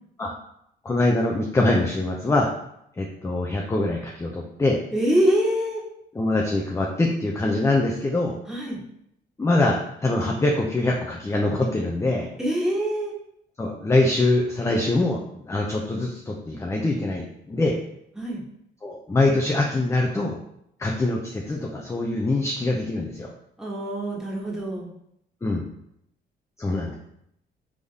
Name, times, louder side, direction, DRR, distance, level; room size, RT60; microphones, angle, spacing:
voice 1, 0.8-2.5 3.0-4.8 6.1-8.4 9.4-12.3 13.6-17.7 18.8-20.4 20.8-23.3 25.4-25.6 26.6-26.9, left 2 dB, 15° left, 0 dB, 0.5 m, -23 dB
voice 2, 4.9-5.8 8.5-8.8 12.4-13.1 18.2-18.4 23.6-24.9, equal, 5° right, -4 dB, 1.4 m, -24 dB
3.9 x 3.6 x 3.5 m, 0.75 s
cardioid pair, 90°, 20 cm